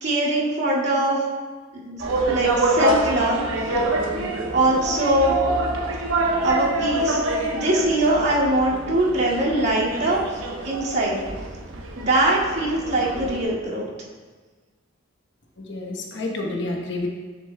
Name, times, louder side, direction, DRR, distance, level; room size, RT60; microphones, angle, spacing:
voice 1, 0.0-1.2 1.7-3.4 4.5-5.4 6.4-7.2 7.5-11.2 12.0-13.9, right 1 dB, 55° right, -6 dB, 2.1 m, -22 dB
sound 1, 2.0-13.4, right 1 dB, 80° right, 1.0 m, -26 dB
voice 2, 15.6-17.1, left 2 dB, 60° left, 1 dB, 1.0 m, -29 dB
10.5 x 7.3 x 2.2 m, 1.4 s
head